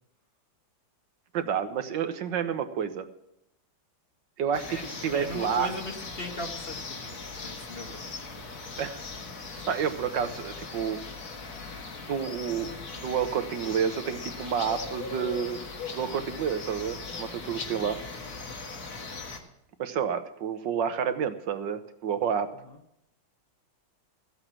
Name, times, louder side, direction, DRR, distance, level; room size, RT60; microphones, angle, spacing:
voice 1, 1.3-3.1 4.4-4.8 5.0-5.7 8.8-9.0 9.5-11.0 12.1-15.6 15.9-18.0 19.8-22.5, right 7 dB, 70° right, 9 dB, 1.6 m, -29 dB
sound 1, 4.5-19.4, left 4 dB, 55° left, 2.0 m, -39 dB
voice 2, 4.7-8.1 9.5-9.7 17.8-17.9 22.6-22.8, left 1 dB, 35° left, 4 dB, 1.3 m, -39 dB
14.5 x 8.0 x 7.4 m, 0.80 s
omnidirectional pair, 2.1 m